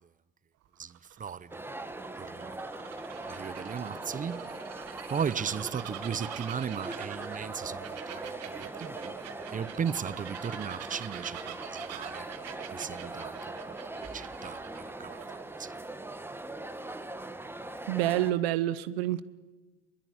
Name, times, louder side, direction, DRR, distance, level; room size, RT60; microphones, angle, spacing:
Bird vocalization bird call bird song, 0.7-15.7, right 13 dB, 60° right, 1.7 m, -45 dB
voice 1, 0.8-1.6 2.2-2.6 3.3-4.5 5.1-9.1 9.5-12.3 12.7-15.2 15.6-15.8, right 7 dB, 25° right, 0.8 m, -36 dB
sound 1, 1.5-18.3, right 2 dB, 5° right, 1.6 m, -41 dB
voice 2, 17.9-19.2, right 14 dB, 85° right, 1.0 m, -28 dB
22.0 x 22.0 x 9.9 m
supercardioid pair, 85°, 30 cm